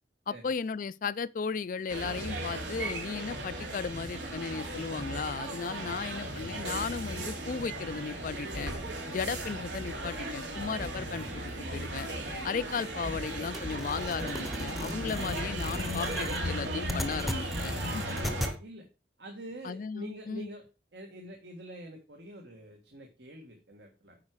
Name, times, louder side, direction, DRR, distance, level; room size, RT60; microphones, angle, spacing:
voice 1, 0.3-8.7 9.1-11.4 11.7-12.1 12.4-18.0 19.6-20.5, left 5 dB, 45° left, 0.4 m, -35 dB
sound 1, 1.9-18.5, right 1 dB, 85° right, 2.9 m, -36 dB
sound 2, 13.5-18.6, equal, ahead, 0.8 m, -38 dB
voice 2, 19.2-24.2, right 1 dB, 70° right, 1.6 m, -46 dB
9.6 x 4.9 x 4.6 m
head